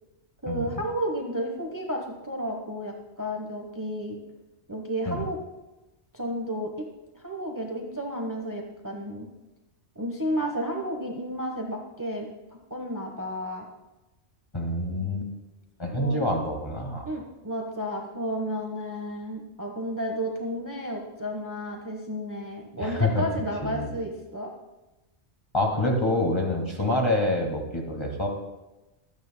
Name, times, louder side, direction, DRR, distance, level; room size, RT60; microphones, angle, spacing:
voice 1, 0.4-4.2 4.7-5.4 6.1-6.7 7.1-9.3 9.9-12.3 12.7-13.7 15.9-16.3 17.0-24.5, equal, 15° right, 1 dB, 1.1 m, -32 dB
voice 2, 14.5-15.3 15.8-17.1 22.8-23.2 23.6-24.0 25.5-28.3, left 1 dB, 25° left, 0 dB, 1.9 m, -26 dB
24.5 x 9.5 x 2.2 m, 1.0 s
omnidirectional pair, 1.2 m